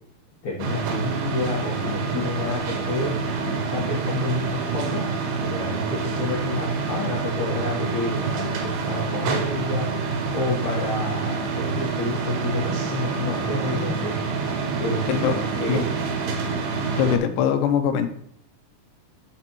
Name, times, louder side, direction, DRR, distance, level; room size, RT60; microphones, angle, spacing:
voice 1, 0.4-3.1 3.4-5.0 5.4-9.9 10.3-14.1 14.8-15.9, left 2 dB, 65° left, -6 dB, 2.6 m, -29 dB
sound 1, 0.6-17.2, right 4 dB, 85° right, 2.7 m, -27 dB
voice 2, 17.0-18.1, left 8 dB, 90° left, 8 dB, 2.4 m, -21 dB
12.0 x 4.3 x 3.0 m, 0.69 s
omnidirectional pair, 4.0 m